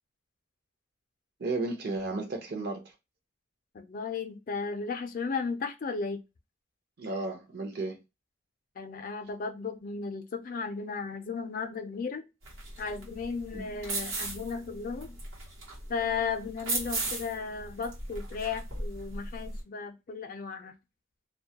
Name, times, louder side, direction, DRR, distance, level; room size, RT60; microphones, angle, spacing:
voice 1, 1.4-2.9 7.0-8.0 13.5-13.6, right 2 dB, 55° right, 0.6 m, -33 dB
voice 2, 3.7-6.2 8.8-12.2 12.8-15.2 15.9-20.7, left 5 dB, 45° left, 0.4 m, -35 dB
sound 1, 12.4-19.6, right 2 dB, 80° right, 0.9 m, -37 dB
2.2 x 2.1 x 2.8 m
head